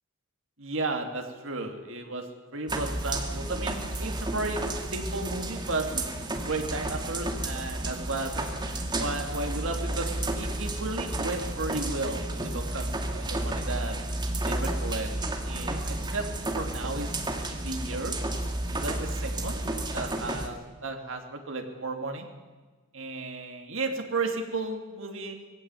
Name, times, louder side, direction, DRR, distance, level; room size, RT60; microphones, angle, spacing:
voice 1, 0.6-2.3 2.5-4.6 4.9-6.0 6.4-10.1 10.4-14.0 14.4-15.1 15.5-16.2 16.6-17.2 17.5-18.1 18.7-19.6 19.9-22.3 22.9-25.3, right 3 dB, 70° right, 3 dB, 2.9 m, -34 dB
sound 1, 2.7-20.5, right 1 dB, 20° right, 2.2 m, -32 dB
20.5 x 16.0 x 9.4 m, 1.3 s
head